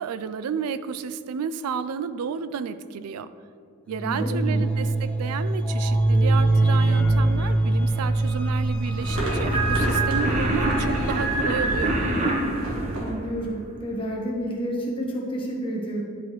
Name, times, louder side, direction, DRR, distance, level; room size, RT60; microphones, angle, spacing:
voice 1, 0.0-3.3 3.9-12.0, right 6 dB, 90° right, 13 dB, 0.3 m, -32 dB
sound 1, 3.9-12.2, right 2 dB, 5° left, 0.9 m, -23 dB
voice 2, 4.0-4.6 12.9-16.0, equal, 25° left, -2 dB, 1.1 m, -30 dB
sound 2, 9.0-13.1, right 1 dB, 65° right, 1.4 m, -31 dB
sound 3, 9.1-13.6, right 2 dB, 30° right, 0.9 m, -26 dB
10.0 x 4.9 x 3.1 m, 2.3 s
head